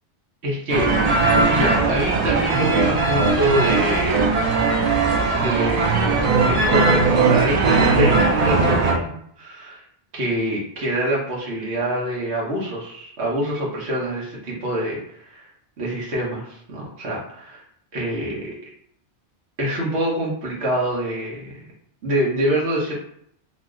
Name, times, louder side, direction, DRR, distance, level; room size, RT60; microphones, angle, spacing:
voice 1, 0.4-0.9 1.5-4.3 5.3-9.8 10.1-15.0 15.3-15.4 15.8-17.6 17.9-18.5 19.6-21.6 22.0-23.0, right 1 dB, 90° right, -4 dB, 1.2 m, -25 dB
sound 1, 0.7-8.9, right 3 dB, 50° right, 0.5 m, -19 dB
2.9 x 2.1 x 3.5 m, 0.67 s
omnidirectional pair, 1.1 m